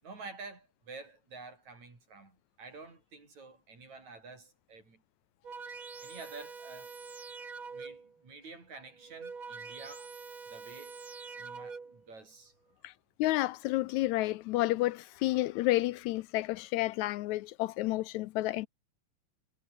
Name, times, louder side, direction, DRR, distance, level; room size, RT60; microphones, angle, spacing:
voice 1, 0.0-5.0 6.0-6.9 7.7-10.1 10.5-11.0 11.3-12.5 12.8-12.9, right 3 dB, 65° right, 8.3 m, -49 dB
sound 1, 5.4-8.2 8.9-12.1, right 4 dB, 40° right, 4.1 m, -45 dB
voice 2, 13.2-18.7, left 17 dB, 80° left, 1.8 m, -30 dB
omnidirectional pair, 3.5 m